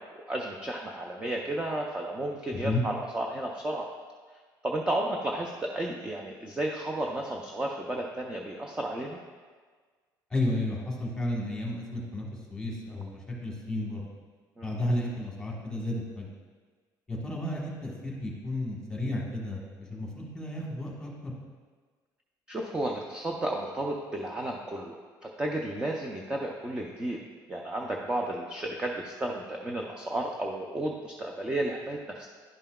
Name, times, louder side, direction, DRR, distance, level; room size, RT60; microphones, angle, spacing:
voice 1, 0.0-3.9 4.6-9.2 14.6-14.8 22.5-27.2 27.5-32.3, right 1 dB, 10° right, 0 dB, 0.4 m, -33 dB
voice 2, 10.3-14.1 14.6-16.3 17.1-21.3, left 1 dB, 10° left, -3 dB, 1.3 m, -32 dB
10.5 x 5.5 x 2.3 m, 1.5 s
cardioid pair, 160°, 8 cm